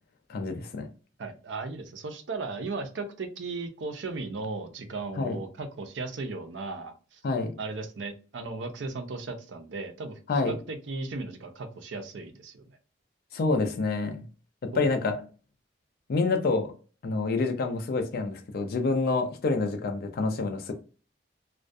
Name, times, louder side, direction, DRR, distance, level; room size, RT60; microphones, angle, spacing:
voice 1, 0.3-0.9 5.2-5.4 7.2-7.6 10.3-10.6 13.3-14.3 14.6-15.2 16.1-16.7 17.0-20.7, left 3 dB, 55° left, 0.4 m, -27 dB
voice 2, 1.2-7.2 7.6-10.2 10.5-12.6 14.7-14.9, right 3 dB, 75° right, 0.5 m, -36 dB
2.3 x 2.1 x 2.5 m
head